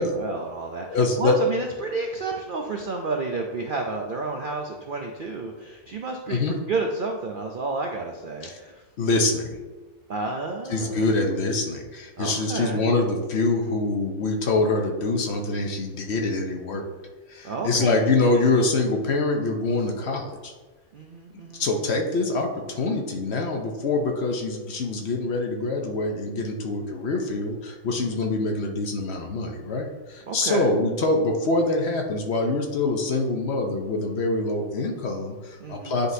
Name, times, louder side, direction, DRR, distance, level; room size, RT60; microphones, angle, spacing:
voice 1, 0.0-8.8 10.1-11.0 12.2-12.9 17.4-18.1 20.9-21.7 27.9-28.2 30.3-30.7 35.6-36.0, right 3 dB, 65° right, 2 dB, 0.5 m, -31 dB
voice 2, 0.9-1.4 6.3-6.5 8.4-8.6 9.0-9.6 10.7-16.9 17.3-20.5 21.6-36.1, left 3 dB, 55° left, 2 dB, 0.9 m, -25 dB
9.8 x 3.9 x 2.7 m, 1.3 s
omnidirectional pair, 1.5 m